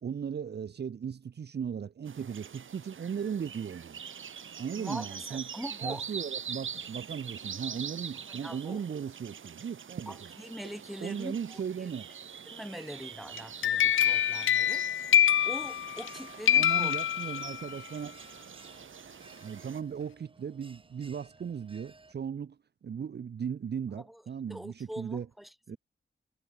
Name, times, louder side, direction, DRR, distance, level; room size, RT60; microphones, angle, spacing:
voice 1, 0.0-4.0 4.6-5.4 5.8-10.3 11.0-12.1 16.6-18.2 19.4-22.6 22.8-25.3 25.7-25.8, right 7 dB, 55° right, 0.8 m, -37 dB
sound 1, 2.1-19.8, right 7 dB, 80° right, 5.7 m, -44 dB
voice 2, 4.7-6.0 8.4-8.8 10.1-11.9 12.5-14.8 15.4-16.9 24.0-24.2 24.5-25.8, equal, ahead, 1.9 m, -43 dB
sound 2, 13.4-16.1 16.5-17.8, left 10 dB, 85° left, 0.5 m, -25 dB
Bell, 14.6-22.1, right 2 dB, 25° right, 6.4 m, -58 dB
wide cardioid pair, 100°, 20 cm